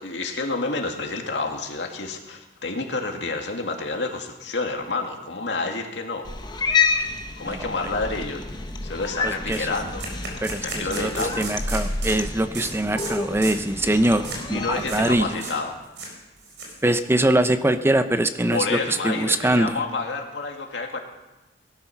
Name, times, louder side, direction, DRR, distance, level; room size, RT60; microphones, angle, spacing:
voice 1, 0.0-6.3 7.4-8.4 8.8-10.1 10.5-11.6 14.5-15.8 18.5-21.0, left 3 dB, 85° left, 3 dB, 2.1 m, -29 dB
Cat, 6.2-15.2, left 4 dB, 25° left, 1.0 m, -29 dB
sound 1, 8.1-8.2 8.6-8.7 9.0-9.1 9.5-12.2 12.5-12.7 13.0-13.1 13.4-13.7 14.2-14.4 14.8-15.0 15.3-15.6 15.8-17.0, right 3 dB, 90° right, 4.5 m, -35 dB
voice 2, 9.2-9.7 10.4-11.1 11.4-15.4 16.8-19.8, right 1 dB, 15° right, 10 dB, 0.6 m, -23 dB
18.0 x 12.0 x 5.8 m, 1.1 s
head